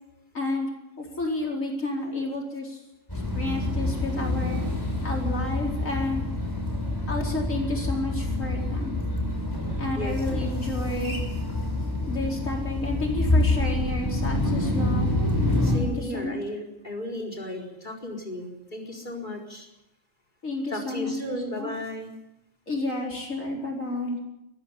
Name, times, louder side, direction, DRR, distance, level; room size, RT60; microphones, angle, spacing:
voice 1, 0.3-0.7 1.0-2.8 3.3-4.6 5.0-6.2 7.1-8.9 9.8-11.2 12.1-15.1 15.7-16.4 20.4-21.7 22.7-24.2, left 2 dB, 90° left, 0 dB, 4.9 m, -31 dB
sound 1, 3.1-15.8, left 1 dB, 15° left, 5.7 m, -27 dB
voice 2, 15.6-19.7 20.7-22.1, left 1 dB, 35° left, 3 dB, 4.6 m, -35 dB
20.5 x 15.0 x 9.9 m, 0.88 s
omnidirectional pair, 1.3 m